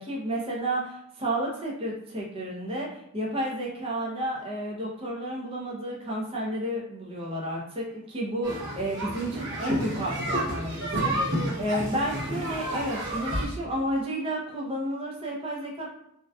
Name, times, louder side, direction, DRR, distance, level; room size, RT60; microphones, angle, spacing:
voice 1, 0.0-15.9, right 1 dB, 25° right, -3 dB, 0.5 m, -31 dB
sound 1, 8.4-13.4, right 1 dB, 55° right, 0.8 m, -30 dB
2.5 x 2.2 x 2.2 m, 0.78 s
head